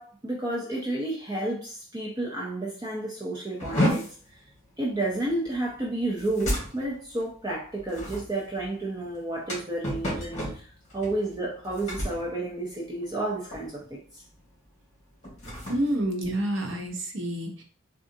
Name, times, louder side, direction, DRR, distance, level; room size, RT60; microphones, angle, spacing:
voice 1, 0.0-4.1 4.8-10.6 10.9-14.2, right 2 dB, 20° right, -4 dB, 0.5 m, -31 dB
sound 1, 3.6-13.2 13.5-13.9 14.3-14.5 15.1-17.0, equal, 35° left, 1.4 m, -33 dB
voice 2, 15.7-17.6, right 1 dB, 65° right, 2 dB, 0.7 m, -28 dB
3.7 x 2.4 x 2.6 m, 0.41 s
head